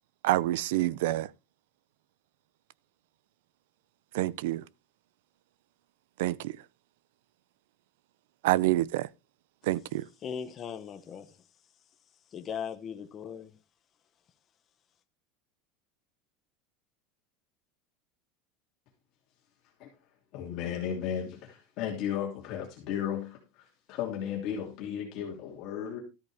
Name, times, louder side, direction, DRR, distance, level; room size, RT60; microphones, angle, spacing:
voice 1, 0.2-1.3 4.1-4.6 6.2-6.6 8.4-9.1 9.6-10.1, right 16 dB, 75° right, 0.6 m, -27 dB
voice 2, 10.2-11.4 12.3-13.5, left 7 dB, 25° left, 0.8 m, -38 dB
voice 3, 20.3-26.0, left 9 dB, 40° left, 3.0 m, -35 dB
13.5 x 8.8 x 3.5 m
supercardioid pair, 180°, 0 cm